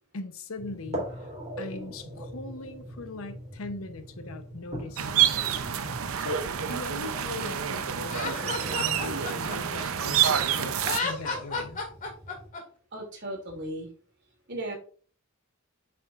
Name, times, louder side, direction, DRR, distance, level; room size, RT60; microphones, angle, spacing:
voice 1, 0.1-1.3 1.6-5.3 6.2-10.8 11.0-11.8, left 2 dB, 85° left, 0.9 m, -40 dB
sound 1, 0.6-12.5, equal, 30° right, 3.4 m, -42 dB
sound 2, 5.0-11.0, right 9 dB, 85° right, 0.6 m, -28 dB
Laughter, 8.1-10.3 10.8-12.6, left 3 dB, 40° left, 2.1 m, -33 dB
voice 2, 12.9-13.9 14.5-14.7, right 1 dB, 55° right, 2.7 m, -36 dB
8.4 x 6.2 x 2.5 m
head